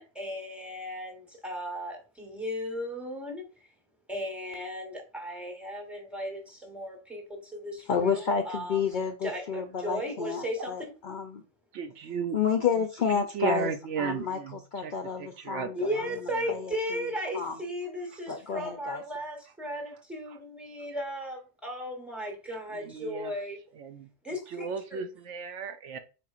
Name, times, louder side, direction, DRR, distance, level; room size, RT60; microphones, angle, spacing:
voice 1, 0.0-3.4 4.1-8.8 9.2-10.9 15.7-23.6 24.2-25.0, equal, ahead, 1.1 m, -36 dB
voice 2, 7.8-11.4 12.3-17.6 18.3-19.0, left 6 dB, 60° left, 0.5 m, -31 dB
voice 3, 11.7-12.4 13.1-14.6 14.8-14.9 15.2-15.7 22.8-23.3 23.8-24.1 24.5-26.0, right 6 dB, 75° right, 0.9 m, -34 dB
4.2 x 4.2 x 2.4 m
omnidirectional pair, 1.3 m